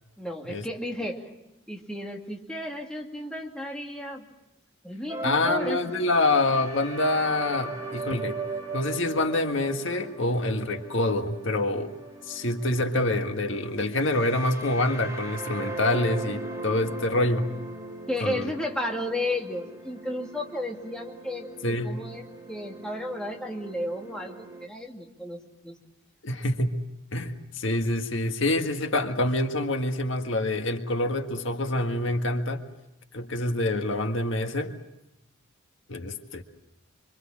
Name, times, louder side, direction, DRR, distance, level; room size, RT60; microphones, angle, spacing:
voice 1, 0.2-1.3 1.7-4.2 4.8-5.8 18.1-25.7, left 1 dB, 5° left, 0 dB, 2.4 m, -33 dB
sound 1, 5.1-24.7, right 3 dB, 15° right, 2.8 m, -39 dB
voice 2, 5.2-8.4 8.7-12.0 12.3-17.5 18.2-18.5 21.6-22.0 26.2-26.8 27.1-32.6 33.1-34.7 35.9-36.4, left 2 dB, 65° left, 5 dB, 1.7 m, -26 dB
26.0 x 25.5 x 7.4 m, 0.90 s
head